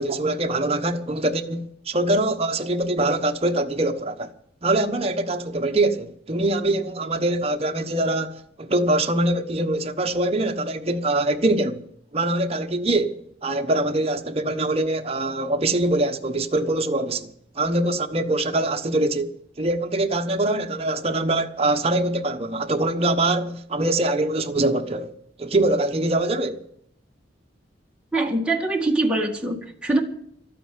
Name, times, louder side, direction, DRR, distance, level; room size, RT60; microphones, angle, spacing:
voice 1, 0.0-4.3 4.6-11.8 12.1-17.3 17.6-19.3 19.6-25.1 25.4-26.7, right 2 dB, 30° right, 1.1 m, -23 dB
voice 2, 28.1-30.0, right 2 dB, 5° right, 1.8 m, -23 dB
12.5 x 9.2 x 9.2 m
head